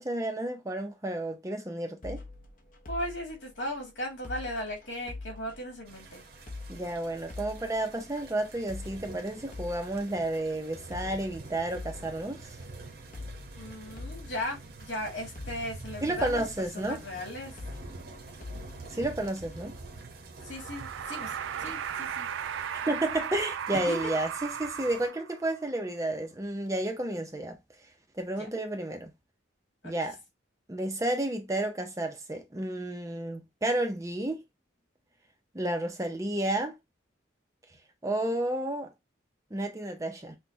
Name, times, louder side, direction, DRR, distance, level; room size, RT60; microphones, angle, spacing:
voice 1, 0.0-2.2 6.7-12.6 16.0-17.0 18.9-19.7 22.9-27.6 28.2-29.1 29.8-30.2 30.7-34.4 35.5-36.8 38.0-38.9 39.5-40.4, right 1 dB, 15° right, 0.5 m, -31 dB
sound 1, 2.0-19.8, left 2 dB, 45° left, 0.8 m, -45 dB
voice 2, 2.9-6.2 13.6-17.5 20.4-21.3 21.6-22.3 23.9-24.1 28.3-28.5 29.8-29.9, left 1 dB, 70° left, 2.0 m, -37 dB
sound 2, 5.9-25.1, right 3 dB, 50° right, 0.8 m, -47 dB
sound 3, 20.4-25.5, right 8 dB, 75° right, 0.3 m, -36 dB
6.0 x 2.2 x 2.7 m
head